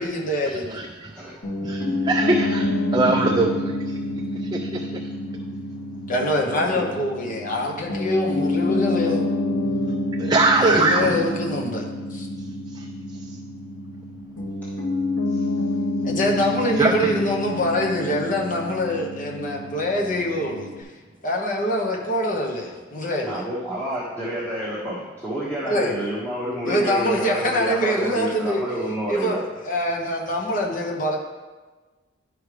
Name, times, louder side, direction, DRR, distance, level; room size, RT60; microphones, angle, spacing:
voice 1, 0.0-0.8 6.1-9.3 10.6-11.8 12.1-12.3 16.0-20.9 21.2-23.4 25.7-26.0 26.6-28.6 29.1-31.2, left 1 dB, 45° left, -1 dB, 1.1 m, -24 dB
voice 2, 0.7-1.1 1.6-3.7 4.4-5.1 10.2-11.2 12.7-12.9 16.8-16.9, right 2 dB, 20° right, 2 dB, 0.4 m, -22 dB
Piano, 1.4-20.8, left 1 dB, 85° left, 2.4 m, -28 dB
voice 3, 1.6-1.9 2.7-3.1 6.7-6.9 15.3-15.4 23.3-29.4, equal, 10° left, -9 dB, 1.2 m, -29 dB
11.0 x 5.0 x 3.4 m, 1.3 s
head